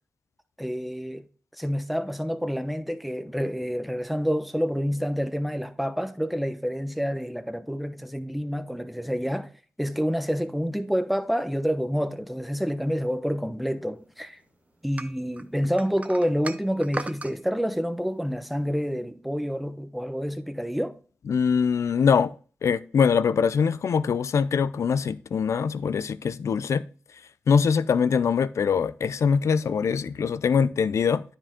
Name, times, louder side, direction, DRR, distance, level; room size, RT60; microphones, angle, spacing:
voice 1, 0.6-1.2 1.6-9.5 9.8-14.4 14.8-20.9, equal, ahead, 0.9 m, -28 dB
sound 1, 15.0-17.4, right 2 dB, 30° right, 0.7 m, -36 dB
voice 2, 21.3-22.3 22.6-26.8 27.5-31.2, left 6 dB, 75° left, 0.4 m, -23 dB
9.9 x 5.0 x 3.7 m
cardioid pair, 50°, 5 cm